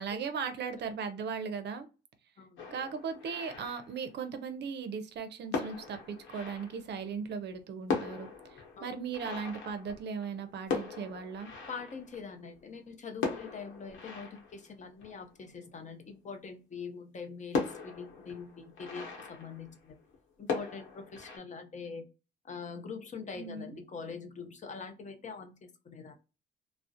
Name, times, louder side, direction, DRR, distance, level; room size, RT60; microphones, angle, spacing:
voice 1, 0.0-1.9 2.7-11.5 23.3-23.8, right 6 dB, 60° right, 0.5 m, -38 dB
voice 2, 2.4-2.7 8.8-9.0 11.7-20.0 20.4-22.1 22.5-26.1, left 5 dB, 35° left, 0.6 m, -44 dB
sound 1, 2.6-4.4 5.2-5.3 5.5-7.2 7.6-7.7 7.9-12.6 13.1-15.8 16.3-16.4 16.8-16.9 17.5-20.2 20.5-21.4, left 5 dB, 75° left, 0.9 m, -39 dB
2.3 x 2.0 x 2.6 m
cardioid pair, 90°, 20 cm